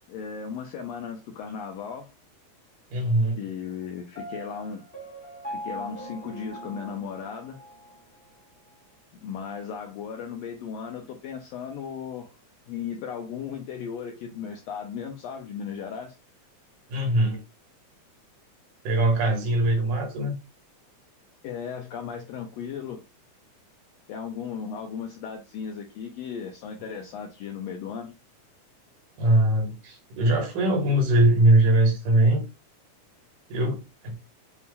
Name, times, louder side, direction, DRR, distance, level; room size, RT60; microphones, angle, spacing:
voice 1, 0.1-2.1 3.4-4.8 5.5-7.6 9.2-12.3 12.7-16.1 21.4-23.0 24.1-28.2, left 7 dB, 80° left, 1.6 m, -36 dB
voice 2, 2.9-3.4 16.9-17.4 18.8-20.3 29.2-32.4 33.5-34.2, right 1 dB, 80° right, 2.9 m, -21 dB
Piano, 4.2-8.0, equal, 5° left, 0.8 m, -40 dB
7.1 x 2.8 x 2.2 m
omnidirectional pair, 3.6 m